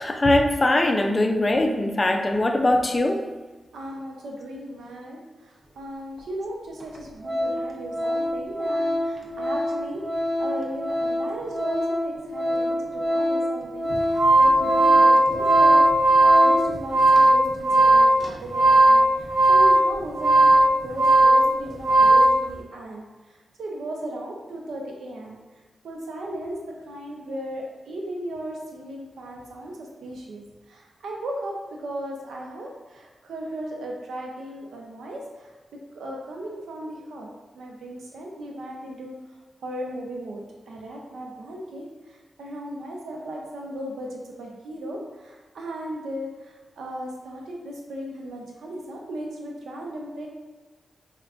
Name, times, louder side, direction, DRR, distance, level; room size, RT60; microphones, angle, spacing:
voice 1, 0.0-3.2, left 1 dB, 30° left, 4 dB, 0.4 m, -21 dB
voice 2, 3.7-10.0 10.4-13.9 14.4-15.8 16.2-23.0 23.6-25.4 25.8-26.6 26.9-30.4 30.7-35.5 35.9-39.1 39.6-41.9 42.4-50.3, right 1 dB, 90° right, 0 dB, 0.6 m, -36 dB
Organ, 6.2-6.3 6.8-7.0 7.2-16.8 17.1-17.3, left 1 dB, 40° right, 0.5 m, -27 dB
sound 1, 13.9-22.4, right 2 dB, 65° right, 0.9 m, -17 dB
4.3 x 2.2 x 2.4 m, 1.3 s
cardioid pair, 70°, 0 cm